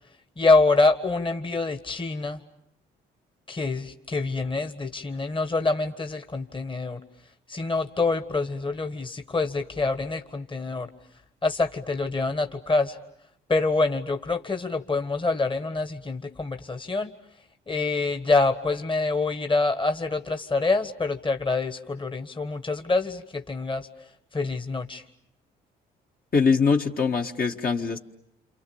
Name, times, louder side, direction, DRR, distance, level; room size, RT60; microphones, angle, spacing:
voice 1, 0.4-2.4 3.5-7.0 7.5-10.9 11.4-13.0 13.5-17.1 17.7-23.9 24.3-25.0, left 3 dB, 25° left, 7 dB, 1.6 m, -26 dB
voice 2, 26.3-28.0, left 5 dB, 45° left, 2 dB, 1.7 m, -22 dB
28.5 x 27.0 x 7.1 m, 0.75 s
supercardioid pair, 55°, 21 cm